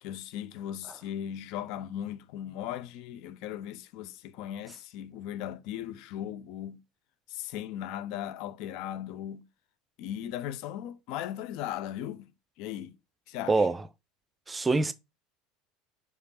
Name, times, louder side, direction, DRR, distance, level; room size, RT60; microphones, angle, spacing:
voice 1, 0.0-6.8 7.3-9.4 10.0-12.3 12.6-12.9 13.3-13.7, left 11 dB, 55° left, 0.6 m, -37 dB
voice 2, 13.5-13.8 14.5-14.9, right 3 dB, 15° right, 0.6 m, -24 dB
5.2 x 5.1 x 4.3 m
figure-of-eight pair, 70°, 0 cm